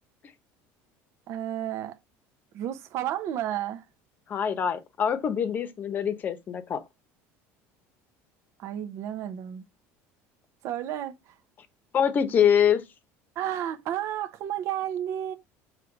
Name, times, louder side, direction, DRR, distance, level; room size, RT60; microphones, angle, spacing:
voice 1, 1.3-1.9 2.5-3.8 8.6-9.6 10.6-11.3 13.4-15.3, right 11 dB, 50° right, 0.8 m, -32 dB
voice 2, 4.3-6.8 11.9-12.8, left 8 dB, 30° left, 1.0 m, -24 dB
6.4 x 3.2 x 5.2 m
cardioid pair, 165°, 6 cm